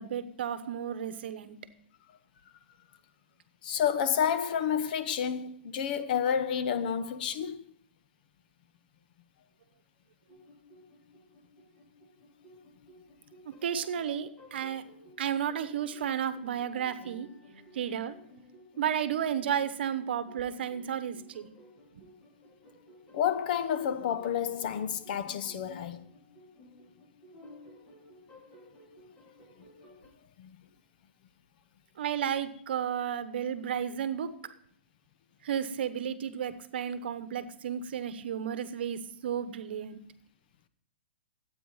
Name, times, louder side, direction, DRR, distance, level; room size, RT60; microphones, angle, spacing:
voice 1, 0.0-1.6 13.4-14.8 15.2-17.3 17.7-18.1 18.8-21.5 21.9-22.0 32.0-34.5 35.4-40.0, right 9 dB, 65° right, 1.0 m, -33 dB
voice 2, 3.6-7.6 23.1-26.0 30.4-30.6, left 8 dB, 50° left, 0.9 m, -30 dB
sound 1, 10.3-30.1, left 1 dB, 25° left, 3.1 m, -55 dB
12.5 x 8.8 x 4.1 m
hypercardioid pair, 150°, 6 cm